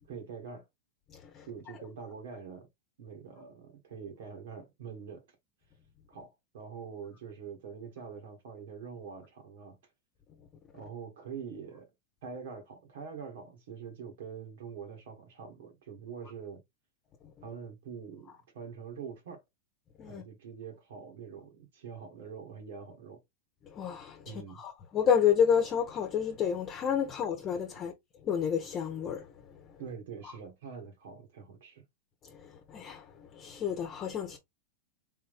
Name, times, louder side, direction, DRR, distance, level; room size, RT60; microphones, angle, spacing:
voice 1, 0.1-0.6 1.5-2.7 3.0-5.2 6.1-9.8 10.7-11.9 12.2-16.6 17.4-19.4 20.1-23.2 24.2-24.6 29.8-31.8, right 6 dB, 70° right, 1.6 m, -44 dB
voice 2, 1.1-1.5 20.0-20.2 23.7-27.9 28.2-29.6 32.2-34.4, left 8 dB, 35° left, 0.9 m, -30 dB
3.6 x 2.7 x 3.4 m
hypercardioid pair, 100°, 0 cm